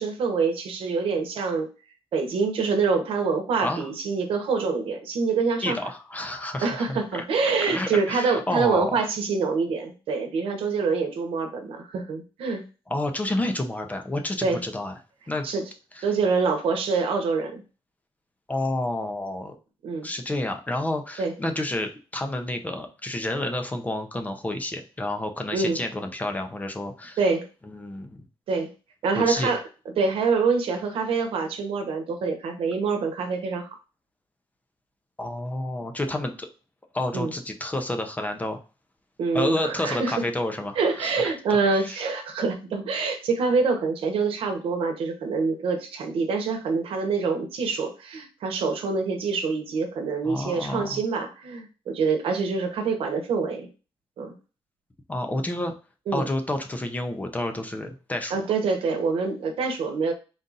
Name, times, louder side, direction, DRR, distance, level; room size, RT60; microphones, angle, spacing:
voice 1, 0.0-1.7 2.1-5.8 6.6-12.6 14.4-14.6 15.4-15.6 16.0-17.6 19.8-20.1 21.2-21.3 25.5-25.8 27.2-27.5 28.5-28.7 29.0-29.6 30.0-33.7 37.1-37.3 39.2-40.2 40.8-53.7 54.2-54.3 56.1-56.3 58.3-60.1, right 4 dB, 70° right, 5 dB, 1.0 m, -25 dB
voice 2, 5.6-7.2 7.7-8.9 12.9-15.0 15.3-15.5 16.0-16.1 18.5-19.6 20.0-27.2 27.6-28.2 29.1-29.5 35.2-36.5 36.9-38.6 39.3-41.3 41.8-42.0 50.2-51.0 55.1-55.7 56.1-58.3, left 1 dB, 15° left, 5 dB, 0.6 m, -29 dB
3.9 x 2.5 x 3.9 m, 0.33 s
cardioid pair, 140°, 10 cm